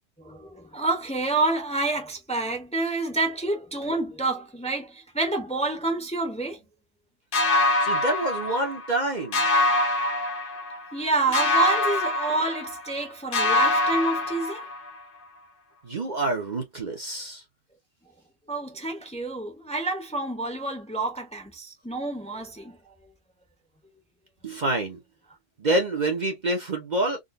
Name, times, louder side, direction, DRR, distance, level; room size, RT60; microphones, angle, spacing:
voice 1, 0.2-6.6 10.9-14.7 18.5-22.9, right 3 dB, 5° left, 0.8 m, -28 dB
sound 1, 7.3-9.0 9.3-11.0 11.3-13.0 13.3-15.0, left 2 dB, 50° left, 0.9 m, -24 dB
voice 2, 7.8-9.5 15.8-17.4 24.4-25.0 25.6-27.2, right 2 dB, 40° right, 0.9 m, -27 dB
3.9 x 2.5 x 2.5 m
omnidirectional pair, 1.3 m